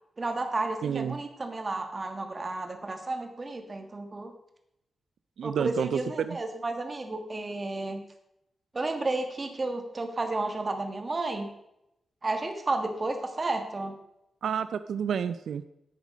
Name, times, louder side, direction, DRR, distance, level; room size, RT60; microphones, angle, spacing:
voice 1, 0.2-4.3 5.4-8.0 8.7-11.5 12.2-14.0, right 2 dB, 30° right, 5 dB, 1.4 m, -32 dB
voice 2, 0.8-1.2 5.4-6.4 14.4-15.6, right 7 dB, 90° right, 12 dB, 0.4 m, -29 dB
10.5 x 8.2 x 5.1 m, 0.83 s
wide cardioid pair, 150°, 0 cm